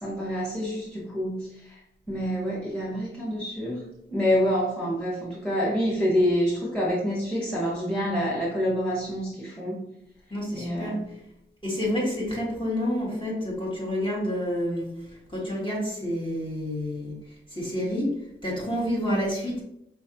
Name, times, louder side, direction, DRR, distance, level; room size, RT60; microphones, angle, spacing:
voice 1, 0.0-1.8 2.1-9.8 10.5-11.0, equal, 5° left, -7 dB, 1.5 m, -27 dB
voice 2, 10.3-11.0 11.6-14.9 15.3-17.1 17.5-18.1 18.4-19.6, equal, 25° left, -5 dB, 1.7 m, -28 dB
5.0 x 3.1 x 2.8 m, 0.78 s
wide cardioid pair, 50°, 21 cm